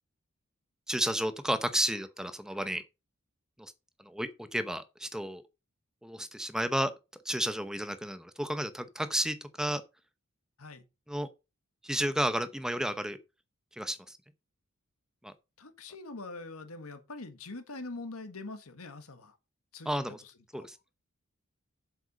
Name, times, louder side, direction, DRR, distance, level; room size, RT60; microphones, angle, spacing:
voice 1, 0.9-2.8 3.6-3.7 4.0-5.4 6.0-6.9 7.2-9.8 11.1-11.3 11.8-13.2 13.7-14.2 15.2-15.3 19.9-20.2 20.5-20.8, right 1 dB, 5° right, 0.8 m, -32 dB
voice 2, 15.6-19.4 19.7-20.7, left 3 dB, 85° left, 1.6 m, -44 dB
7.9 x 7.8 x 5.4 m
head